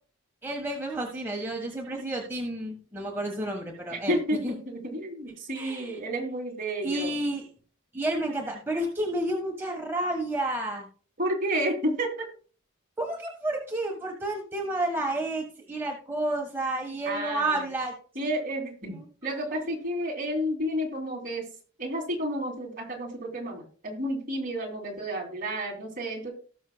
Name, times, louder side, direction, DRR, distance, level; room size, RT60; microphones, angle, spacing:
voice 1, 0.4-4.1 4.4-4.5 5.5-6.0 6.8-7.4 7.9-10.9 13.0-17.9, right 1 dB, 10° right, -1 dB, 1.4 m, -30 dB
voice 2, 3.9-7.1 11.2-12.3 17.0-17.7 18.1-19.0 19.2-21.5 21.8-26.3, equal, 40° right, 0 dB, 2.9 m, -31 dB
18.0 x 6.4 x 2.3 m, 0.40 s
head